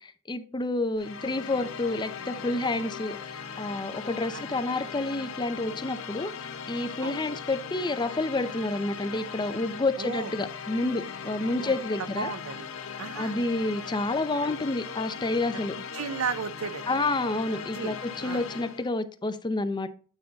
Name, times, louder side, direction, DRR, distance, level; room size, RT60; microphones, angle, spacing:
voice 1, 0.0-12.3 13.2-15.7 16.9-19.9, left 2 dB, 20° left, 0.6 m, -29 dB
sound 1, 1.0-18.9, left 6 dB, 70° left, 0.8 m, -39 dB
voice 2, 10.0-10.3 11.6-12.7 13.0-13.4 15.9-16.8 17.7-18.0 18.2-18.4, right 5 dB, 90° right, 0.6 m, -34 dB
9.0 x 3.9 x 3.9 m
head